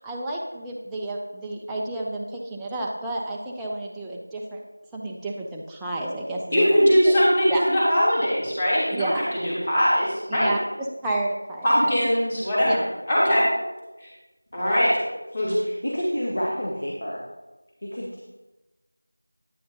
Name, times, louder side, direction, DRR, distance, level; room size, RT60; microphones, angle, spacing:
voice 1, 0.0-4.6 4.9-6.8 7.0-7.1 7.5-7.6 8.9-9.2 10.3-11.7 12.6-12.8, right 2 dB, 5° right, -4 dB, 0.3 m, -31 dB
voice 2, 6.5-10.5 11.6-12.8 13.1-13.4 14.0-14.1 14.5-14.9 15.3-15.7, equal, 25° left, -7 dB, 3.0 m, -21 dB
voice 3, 15.8-17.2 17.8-18.2, equal, 55° left, -2 dB, 1.5 m, -29 dB
11.0 x 9.3 x 2.8 m, 1.1 s
figure-of-eight pair, 175°, 0 cm